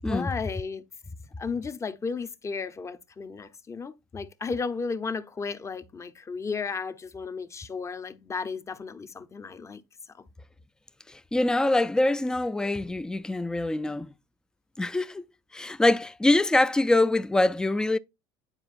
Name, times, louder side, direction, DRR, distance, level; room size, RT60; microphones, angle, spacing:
voice 1, 0.1-0.8 1.4-9.8 10.1-10.3, left 5 dB, 25° left, 0.7 m, -34 dB
voice 2, 11.1-14.1 14.8-15.2 15.5-18.0, left 2 dB, 5° left, 0.3 m, -24 dB
9.8 x 4.4 x 2.5 m
supercardioid pair, 100°, 12 cm